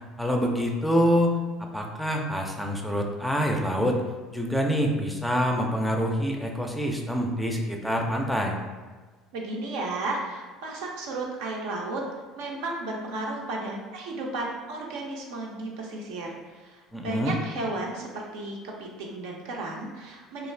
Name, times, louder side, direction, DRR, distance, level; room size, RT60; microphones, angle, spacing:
voice 1, 0.2-4.0 4.3-8.6 16.9-17.3, equal, ahead, 1 dB, 0.4 m, -26 dB
voice 2, 9.3-12.0 12.3-20.5, right 2 dB, 75° right, -1 dB, 0.5 m, -34 dB
2.4 x 2.4 x 3.2 m, 1.4 s
hypercardioid pair, 75°, 0 cm